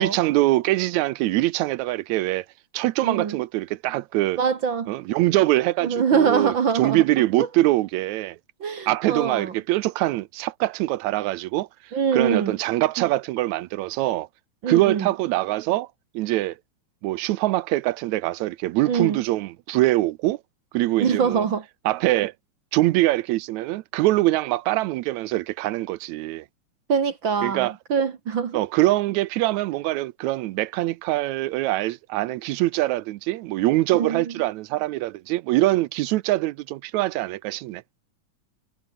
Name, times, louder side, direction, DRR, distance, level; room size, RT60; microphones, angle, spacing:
voice 1, 0.0-2.4 2.7-4.4 4.9-8.4 8.9-11.7 12.1-14.3 14.7-15.9 16.1-16.6 17.0-20.4 20.7-21.4 21.8-22.3 22.7-26.4 27.4-27.7 28.5-37.8, right 17 dB, 75° right, 1.9 m, -23 dB
voice 2, 3.0-3.4 4.4-4.9 5.8-7.0 7.4-7.5 8.6-9.5 11.9-12.5 14.6-15.1 18.9-19.2 21.0-21.6 26.9-28.6 33.9-34.2, right 6 dB, 45° right, 1.8 m, -23 dB
omnidirectional pair, 3.6 m